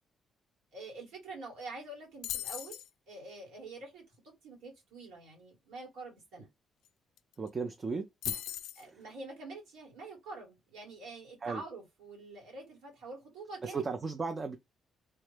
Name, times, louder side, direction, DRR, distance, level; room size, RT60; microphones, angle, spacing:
voice 1, 0.7-2.8 3.1-6.5 8.8-13.8, right 3 dB, 85° right, 2.1 m, -46 dB
sound 1, 2.2-2.9 6.8-6.9 7.2-7.5 8.2-8.8, left 12 dB, 85° left, 0.3 m, -38 dB
voice 2, 7.4-8.4 8.8-9.0 11.4-11.6 13.6-14.6, right 4 dB, 35° right, 0.5 m, -36 dB
3.2 x 2.2 x 3.3 m
cardioid pair, 90°, 0 cm